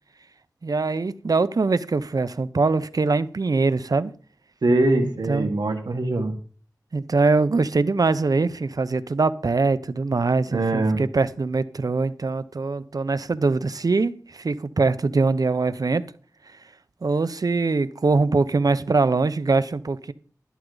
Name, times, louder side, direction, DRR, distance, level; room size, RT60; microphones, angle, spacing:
voice 1, 0.6-4.1 5.3-5.5 6.9-16.0 17.0-20.1, right 3 dB, 60° right, 0.7 m, -22 dB
voice 2, 4.6-6.3 10.5-11.0, right 2 dB, 80° right, 1.3 m, -22 dB
11.5 x 11.0 x 3.9 m
wide cardioid pair, 60°, 7 cm